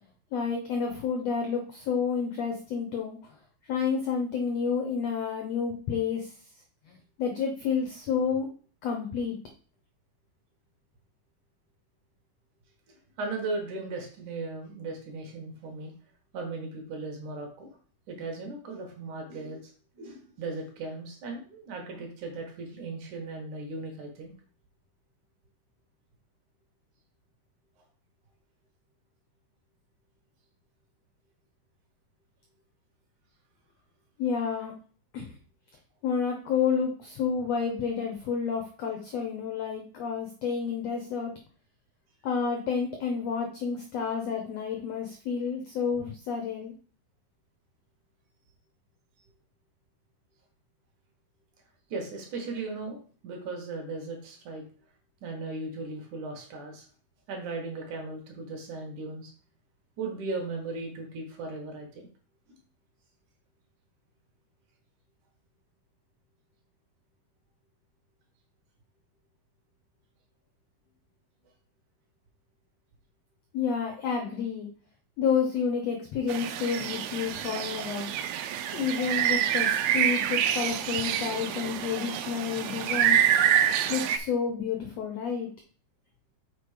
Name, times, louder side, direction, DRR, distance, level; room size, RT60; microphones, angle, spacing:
voice 1, 0.3-3.3 3.6-6.3 6.9-8.5 8.8-9.4 34.2-34.7 35.1-35.3 36.0-41.3 42.2-46.7 73.5-74.7 75.2-78.1 78.7-83.2 83.9-85.5, left 6 dB, 80° left, 3 dB, 1.5 m, -30 dB
voice 2, 12.9-15.9 16.3-17.7 18.1-24.3 51.9-54.6 55.2-56.9 57.3-59.3 60.0-62.1, right 3 dB, 65° right, 2 dB, 2.5 m, -37 dB
sound 1, 76.3-84.2, right 10 dB, 80° right, 2.4 m, -27 dB
6.4 x 4.2 x 4.9 m, 0.42 s
omnidirectional pair, 4.2 m